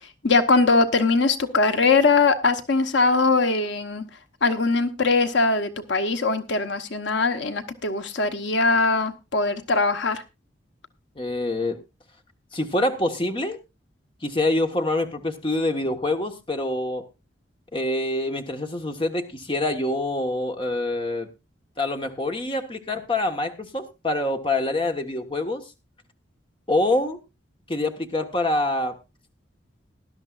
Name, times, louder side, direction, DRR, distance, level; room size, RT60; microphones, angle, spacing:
voice 1, 0.2-4.0 4.4-10.2, left 3 dB, 70° left, 8 dB, 1.1 m, -21 dB
voice 2, 11.2-11.8 12.5-13.6 14.2-17.0 17.7-21.3 21.8-25.6 26.7-27.2 27.7-28.9, left 2 dB, 25° left, 5 dB, 1.3 m, -25 dB
18.5 x 12.0 x 2.5 m, 0.26 s
head